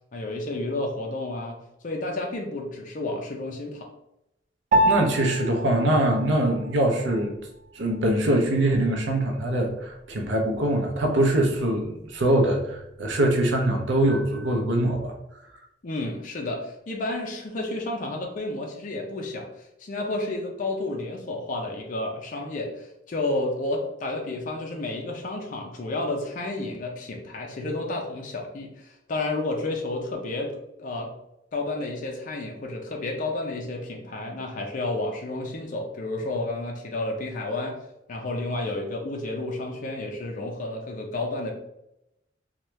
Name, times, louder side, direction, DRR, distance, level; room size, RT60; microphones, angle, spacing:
voice 1, 0.1-1.6 1.8-3.9 15.8-30.5 30.8-31.1 31.5-37.8 38.1-41.5, left 2 dB, 45° left, 1 dB, 0.5 m, -31 dB
Piano, 4.7-14.3, right 1 dB, 45° right, 0.3 m, -31 dB
voice 2, 4.8-7.4 7.7-15.1, right 1 dB, 90° right, 2 dB, 0.6 m, -23 dB
2.9 x 2.3 x 3.1 m, 0.84 s
head